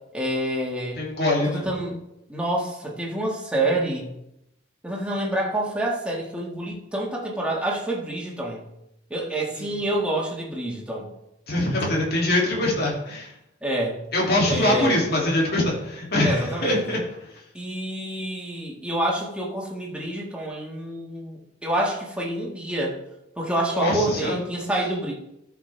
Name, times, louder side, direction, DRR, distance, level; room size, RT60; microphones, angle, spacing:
voice 1, 0.1-1.0 1.5-2.0 2.3-4.1 4.8-8.6 9.1-11.1 13.6-14.0 14.5-15.0 16.2-17.0 17.5-23.0 23.4-25.1, right 1 dB, 5° right, -3 dB, 1.8 m, -27 dB
voice 2, 0.9-1.7 9.5-9.7 11.5-13.3 14.1-17.0 23.7-24.4, left 1 dB, 55° left, -2 dB, 2.7 m, -23 dB
13.0 x 6.0 x 3.4 m, 0.85 s
head